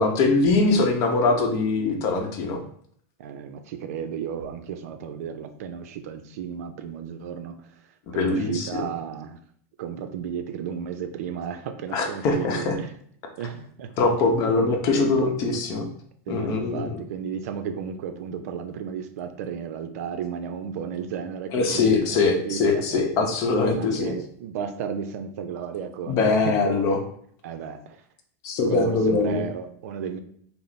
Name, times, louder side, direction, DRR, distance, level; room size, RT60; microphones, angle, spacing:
voice 1, 0.0-2.6 8.1-8.7 11.9-12.8 14.0-15.8 16.3-17.0 21.5-24.1 26.1-27.0 28.4-29.4, left 3 dB, 40° left, 3 dB, 0.7 m, -22 dB
voice 2, 3.2-7.8 8.1-9.4 9.8-12.9 13.4-14.1 14.5-15.8 16.3-27.0 27.4-28.0 28.7-30.2, right 7 dB, 70° right, 8 dB, 0.5 m, -34 dB
4.2 x 2.0 x 4.0 m, 0.63 s
supercardioid pair, 150°, 8 cm